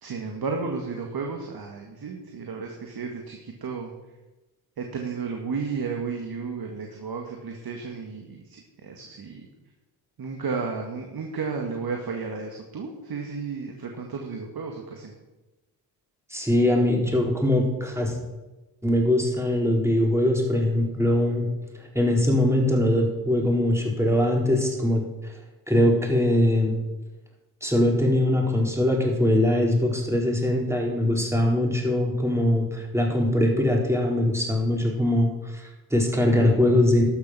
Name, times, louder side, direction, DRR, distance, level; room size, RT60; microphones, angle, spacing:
voice 1, 0.0-3.9 4.8-9.5 10.2-15.1, right 5 dB, 50° right, 2 dB, 2.0 m, -33 dB
voice 2, 16.3-18.1 18.8-21.5 21.7-25.3 25.7-26.8 27.6-37.0, left 1 dB, 5° right, 0 dB, 4.0 m, -22 dB
12.5 x 6.8 x 6.1 m, 1.1 s
supercardioid pair, 55°, 48 cm